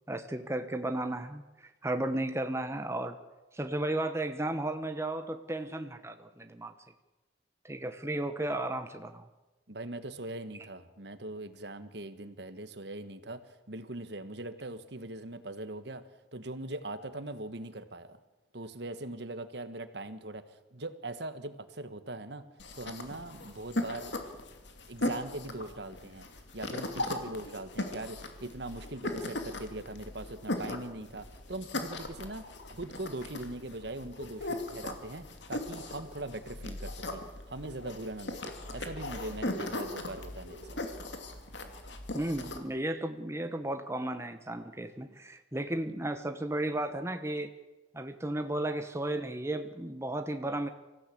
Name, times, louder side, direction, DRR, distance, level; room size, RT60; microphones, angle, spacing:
voice 1, 0.1-3.2 3.5-6.7 7.6-9.3 42.1-47.5 47.9-50.7, right 1 dB, 15° right, 7 dB, 1.0 m, -34 dB
voice 2, 9.7-16.0 16.3-18.2 18.5-22.4 22.8-24.2 24.9-40.8 45.9-46.0, right 2 dB, 60° right, 11 dB, 1.4 m, -41 dB
sound 1, 22.6-42.6, left 1 dB, 65° left, 2.6 m, -39 dB
24.5 x 15.5 x 8.5 m, 1.1 s
head